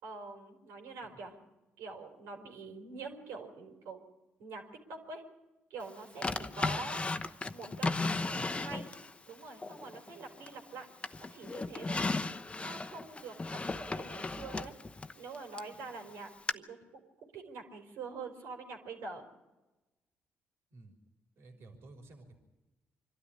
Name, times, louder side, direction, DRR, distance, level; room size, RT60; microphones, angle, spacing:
voice 1, 0.0-1.4 1.8-4.0 4.4-5.2 5.7-8.0 8.3-8.9 9.3-10.9 11.2-12.0 12.6-14.7 15.1-19.3, right 4 dB, 85° right, 3 dB, 4.4 m, -45 dB
Drawer open or close, 6.2-9.1 9.6-10.7 11.0-15.7 16.5-16.6, left 3 dB, 25° left, 1.0 m, -35 dB
voice 2, 8.1-8.8 20.7-21.0 21.4-22.4, right 2 dB, 65° right, 3 dB, 3.7 m, -53 dB
25.0 x 12.5 x 10.0 m, 1.1 s
supercardioid pair, 60°, 5 cm